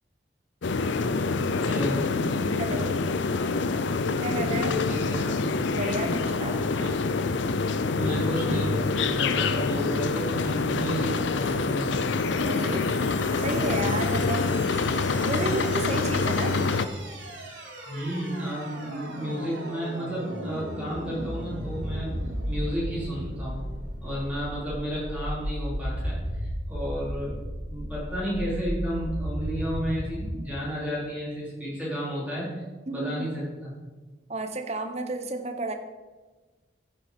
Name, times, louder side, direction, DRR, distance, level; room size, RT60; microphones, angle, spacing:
sound 1, 0.6-16.9, left 4 dB, 75° left, 0.6 m, -26 dB
voice 1, 1.6-2.1 4.4-5.4 6.7-7.1 7.9-12.0 14.1-14.4 17.8-22.1 22.5-23.6 24.0-27.4 27.7-32.6 32.9-33.7, equal, 5° right, -8 dB, 4.3 m, -32 dB
voice 2, 2.6-3.1 4.2-4.8 5.7-6.7 12.3-12.8 13.4-14.5 15.2-16.6 32.9-33.3 34.3-35.7, right 2 dB, 35° right, 6 dB, 1.0 m, -32 dB
sound 2, 11.4-30.4, equal, 85° right, 3.0 m, -35 dB
14.5 x 6.7 x 5.2 m, 1.3 s
head